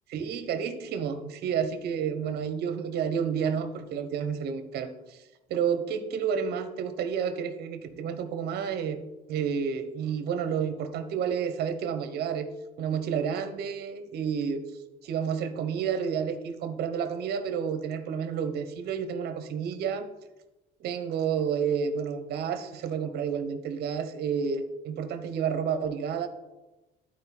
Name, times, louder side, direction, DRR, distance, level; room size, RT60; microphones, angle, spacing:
voice 1, 0.1-5.2 5.5-12.5 12.8-14.6 15.0-20.1 20.8-26.3, right 7 dB, 70° right, 10 dB, 0.9 m, -30 dB
11.5 x 4.6 x 4.2 m, 1.1 s
cardioid pair, 110°, 17 cm